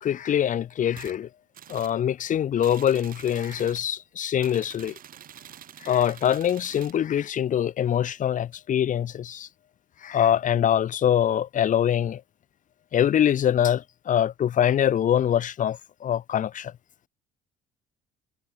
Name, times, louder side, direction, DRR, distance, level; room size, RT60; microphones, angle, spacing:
voice 1, 0.0-1.3 1.7-5.0 5.8-9.5 10.0-12.2 12.9-16.7, left 10 dB, 50° left, 1.5 m, -24 dB
sound 1, 0.9-1.2 1.5-2.0 2.6-3.9 4.4-7.0, right 10 dB, 55° right, 3.2 m, -47 dB
cardioid pair, 110°, 17 cm